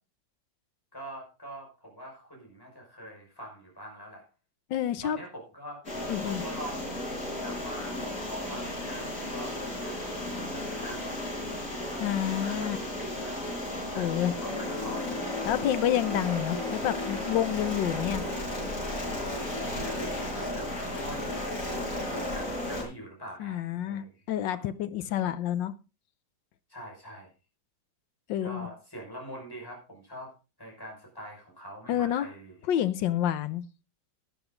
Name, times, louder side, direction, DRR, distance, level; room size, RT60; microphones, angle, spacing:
voice 1, 0.9-4.2 5.0-5.8 6.2-7.1 7.4-8.0 8.3-11.2 11.9-13.4 13.9-15.3 19.5-21.8 22.0-24.1 26.7-27.3 28.4-30.3 30.6-32.6, equal, 10° left, 5.7 m, -44 dB
voice 2, 4.7-5.2 6.1-6.4 12.0-12.8 13.9-14.3 15.5-18.2 23.4-25.7 28.3-28.7 31.9-32.3 32.7-33.6, left 11 dB, 90° left, 1.5 m, -28 dB
sound 1, 5.8-22.8, left 1 dB, 55° left, 6.1 m, -34 dB
12.0 x 11.0 x 3.9 m
omnidirectional pair, 1.9 m